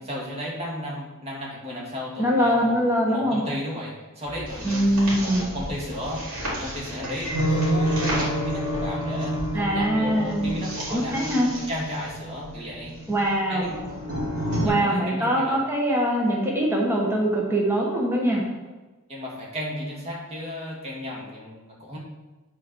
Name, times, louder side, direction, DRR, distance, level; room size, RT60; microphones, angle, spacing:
voice 1, 0.0-2.8 3.1-4.9 5.2-11.2 11.7-12.9 13.5-13.7 14.5-15.7 19.1-22.0, left 1 dB, 30° right, -4 dB, 2.2 m, -34 dB
voice 2, 2.2-3.4 4.6-5.5 9.5-10.6 10.9-11.5 13.1-13.7 14.6-18.4, equal, 10° right, -2 dB, 1.4 m, -23 dB
sound 1, 4.3-14.7, right 1 dB, 70° right, 3.0 m, -29 dB
8.3 x 4.5 x 6.2 m, 1.2 s
head